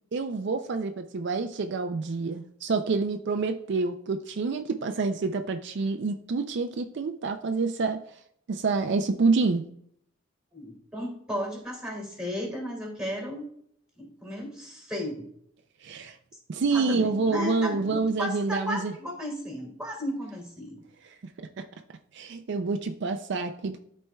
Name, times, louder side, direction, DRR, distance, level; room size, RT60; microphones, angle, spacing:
voice 1, 0.1-8.0 8.5-9.6 15.8-16.2 16.5-18.9 21.4-21.6 22.1-23.8, right 4 dB, 60° right, 7 dB, 0.4 m, -27 dB
voice 2, 10.5-13.5 14.0-15.3 16.6-20.8, left 1 dB, 5° right, 1 dB, 2.1 m, -34 dB
12.5 x 4.2 x 2.3 m, 0.69 s
head